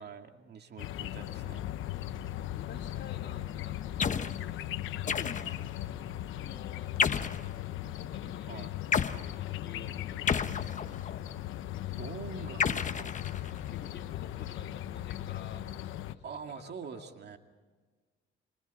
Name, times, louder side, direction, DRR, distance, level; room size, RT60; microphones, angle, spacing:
voice 1, 0.0-1.6 8.5-8.7 12.0-13.2 16.2-17.4, right 5 dB, 55° right, 5 dB, 2.3 m, -44 dB
sound 1, 0.8-16.1, left 12 dB, 85° left, 1.0 m, -38 dB
voice 2, 2.5-5.6 6.4-7.0 7.9-11.2 13.6-15.7 16.0-17.1, left 7 dB, 65° left, 2 dB, 3.6 m, -51 dB
sound 2, 4.0-4.4 5.1-5.7 7.0-7.5 8.9-9.2 10.3-11.1 12.6-13.7, left 6 dB, 40° left, 1.1 m, -30 dB
28.0 x 26.0 x 4.2 m, 1.4 s
cardioid pair, 90°, 20 cm